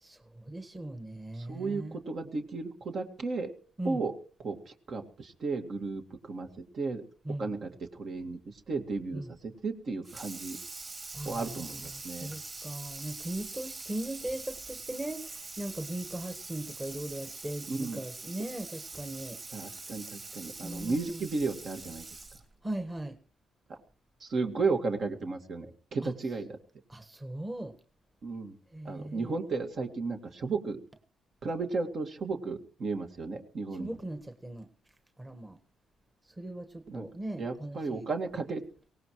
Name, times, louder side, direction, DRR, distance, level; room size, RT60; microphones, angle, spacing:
voice 1, 0.0-2.0 3.8-4.0 7.2-7.5 9.1-9.3 11.1-19.4 20.6-21.3 22.6-23.1 26.0-26.1 26.9-27.7 28.7-29.5 33.8-34.7 35.2-35.6 36.2-38.0, right 1 dB, 15° right, 8 dB, 1.5 m, -39 dB
voice 2, 1.4-3.5 3.8-4.1 4.4-6.5 6.7-7.1 7.4-8.4 8.7-10.6 11.3-12.3 17.7-18.0 19.5-22.1 23.7-23.8 24.2-26.6 28.2-28.6 28.8-30.8 31.4-34.0 36.9-37.0 37.4-38.6, right 3 dB, 50° right, 4 dB, 2.1 m, -34 dB
Water tap faucet / Sink (filling or washing), 10.0-22.5, right 3 dB, 35° right, 3.8 m, -44 dB
23.0 x 18.0 x 3.2 m, 0.41 s
cardioid pair, 90°, 0 cm